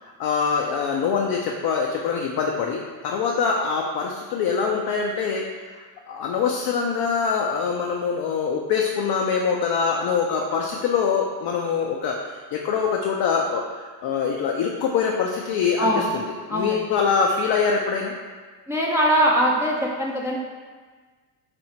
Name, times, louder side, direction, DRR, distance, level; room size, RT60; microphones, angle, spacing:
voice 1, 0.0-5.8 6.1-16.2 16.5-18.1, left 5 dB, 55° left, 0 dB, 0.6 m, -24 dB
voice 2, 18.7-20.4, equal, 5° right, -3 dB, 0.4 m, -21 dB
4.3 x 2.8 x 4.3 m, 1.4 s
supercardioid pair, 95°, 47 cm